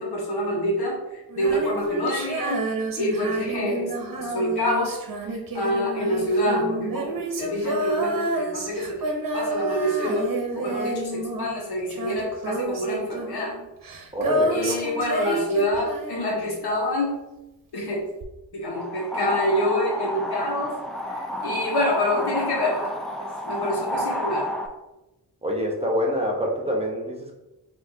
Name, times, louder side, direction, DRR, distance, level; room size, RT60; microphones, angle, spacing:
voice 1, 0.0-2.7 3.0-3.9 4.2-5.0 5.5-13.5 14.5-17.2 17.7-18.0 18.5-20.8 21.1-23.0 23.5-24.5, equal, 80° left, -2 dB, 1.2 m, -26 dB
Female singing, 1.3-16.7 18.2-18.3, right 1 dB, 60° right, 0.9 m, -29 dB
voice 2, 14.1-14.8 25.4-27.3, equal, 15° right, -1 dB, 1.0 m, -26 dB
sound 1, 18.7-24.7, left 1 dB, ahead, 0.5 m, -30 dB
5.7 x 2.8 x 2.7 m, 0.98 s
cardioid pair, 55°, 39 cm